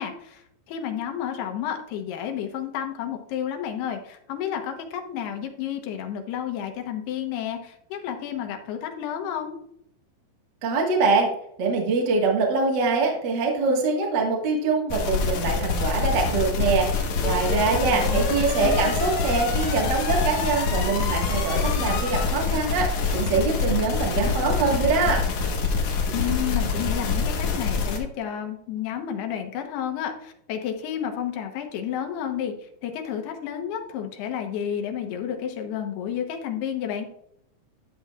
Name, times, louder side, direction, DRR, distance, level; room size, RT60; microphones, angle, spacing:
voice 1, 0.0-9.6 17.9-18.2 18.5-19.0 26.1-37.1, left 9 dB, 85° left, 4 dB, 3.1 m, -31 dB
voice 2, 10.6-11.3 11.6-25.2, right 4 dB, 50° right, 0 dB, 1.3 m, -24 dB
sound 1, 14.9-28.0, left 4 dB, 60° left, 2.4 m, -25 dB
12.0 x 7.4 x 2.4 m, 0.71 s
omnidirectional pair, 4.5 m